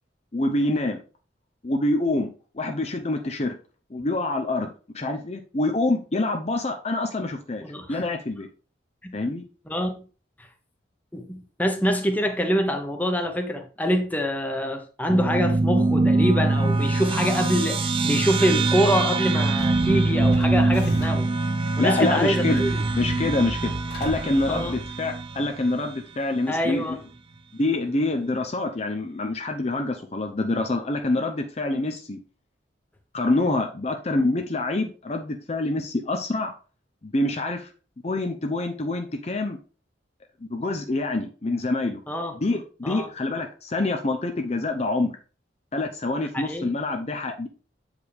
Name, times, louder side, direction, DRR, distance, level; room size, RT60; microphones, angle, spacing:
voice 1, 0.3-1.0 1.6-2.3 2.5-3.5 3.9-7.6 7.9-8.5 9.1-9.4 21.8-22.6 22.9-23.7 24.0-27.0 27.6-32.2 33.1-36.5 37.0-37.7 38.0-39.6 40.5-42.0 42.4-45.1 45.7-47.5, left 2 dB, 35° left, 0.6 m, -26 dB
voice 2, 7.6-8.0 9.0-9.1 9.7-10.0 11.1-21.3 21.8-22.8 24.5-24.8 26.5-27.0 42.1-42.4 42.8-43.1 46.3-46.7, equal, 10° left, 1.0 m, -25 dB
sound 1, 15.1-25.9, right 2 dB, 30° right, 0.5 m, -23 dB
sound 2, 19.6-21.4 22.5-25.4, equal, 60° left, 2.0 m, -36 dB
8.1 x 4.9 x 3.5 m
head